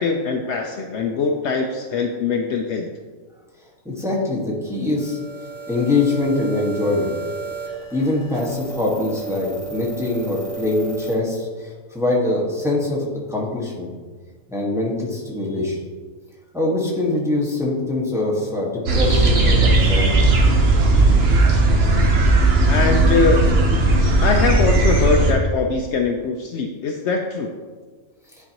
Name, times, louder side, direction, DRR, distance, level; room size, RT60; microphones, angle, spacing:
voice 1, 0.0-2.9 22.7-23.4 24.0-27.5, left 4 dB, 65° left, 2 dB, 0.8 m, -22 dB
voice 2, 3.8-5.2 5.7-7.1 7.9-13.9 14.5-15.8 16.5-20.2, left 2 dB, ahead, -4 dB, 1.2 m, -23 dB
sound 1, 5.0-11.1, right 5 dB, 75° right, 1.9 m, -34 dB
sound 2, 18.9-25.3, right 2 dB, 55° right, 1.0 m, -16 dB
10.0 x 4.5 x 2.9 m, 1.5 s
omnidirectional pair, 1.4 m